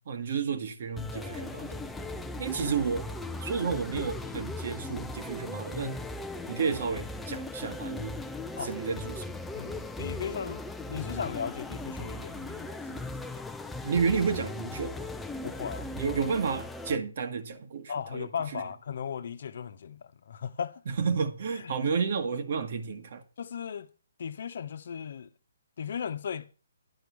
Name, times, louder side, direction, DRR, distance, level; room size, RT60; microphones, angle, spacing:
voice 1, 0.1-1.8 2.4-3.1 3.4-6.1 6.5-8.2 8.6-9.4 13.8-15.1 16.0-18.6 20.9-23.2, right 5 dB, 55° right, 1.6 m, -31 dB
sound 1, 1.0-17.0, left 2 dB, 5° left, 0.6 m, -38 dB
voice 2, 1.1-2.3 8.6-8.7 9.5-13.4 15.4-16.2 17.9-20.8 21.5-21.9 23.4-23.9 24.2-25.3 25.8-26.5, left 7 dB, 60° left, 1.0 m, -37 dB
10.0 x 6.2 x 7.1 m
hypercardioid pair, 140°, 0 cm